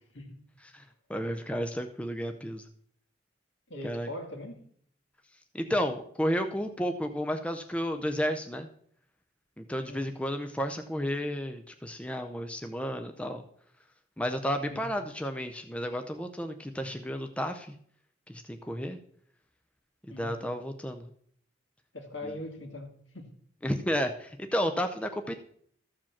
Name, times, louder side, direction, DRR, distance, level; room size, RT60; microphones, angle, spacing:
voice 1, 1.1-2.7 3.8-4.1 5.5-8.7 9.6-13.4 14.2-17.7 18.3-19.0 20.2-21.1 22.2-22.3 23.6-25.4, equal, 5° left, 6 dB, 0.6 m, -32 dB
voice 2, 3.7-4.6 9.8-10.1 14.7-14.9 20.1-20.4 21.9-23.3, left 1 dB, 70° left, 4 dB, 2.3 m, -41 dB
13.5 x 5.0 x 7.2 m, 0.63 s
head